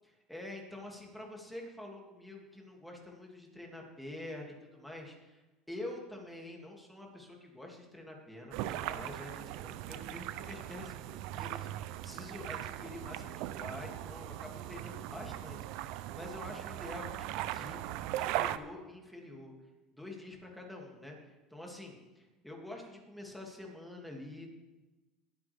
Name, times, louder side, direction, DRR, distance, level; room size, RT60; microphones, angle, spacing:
voice 1, 0.3-11.7 12.0-17.9 18.2-19.5 19.9-24.5, left 1 dB, ahead, 0 dB, 2.5 m, -47 dB
sound 1, 8.5-18.6, right 14 dB, 65° right, 0.5 m, -39 dB
21.5 x 8.8 x 3.5 m, 1.2 s
supercardioid pair, 130°, 0 cm